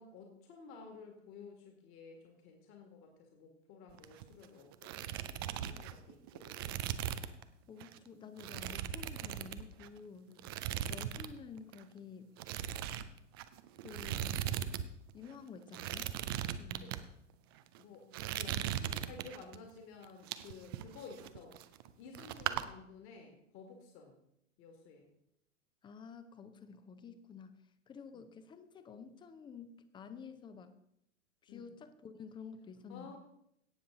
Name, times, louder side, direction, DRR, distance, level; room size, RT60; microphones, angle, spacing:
voice 1, 0.0-6.7 10.3-10.5 16.8-16.9 17.8-21.6 22.0-24.2 24.6-25.1 28.1-28.2 31.5-31.7 32.9-33.2, left 4 dB, 35° left, 3 dB, 1.9 m, -53 dB
sound 1, 3.9-4.4 4.7-7.4 7.8-8.0 8.4-10.0 10.4-11.3 11.6-11.8 12.4-14.8 15.1-15.2 15.7-17.0 17.6-17.8 18.1-19.6 20.0-21.9 22.1-22.6, right 11 dB, 20° right, 0.3 m, -39 dB
voice 2, 7.7-10.4 10.9-12.4 13.8-14.4 15.1-16.2 16.6-17.0 25.8-30.8 31.4-33.2, left 6 dB, 10° left, 11 dB, 0.7 m, -51 dB
17.0 x 6.9 x 3.8 m, 0.76 s
figure-of-eight pair, 105°, 37 cm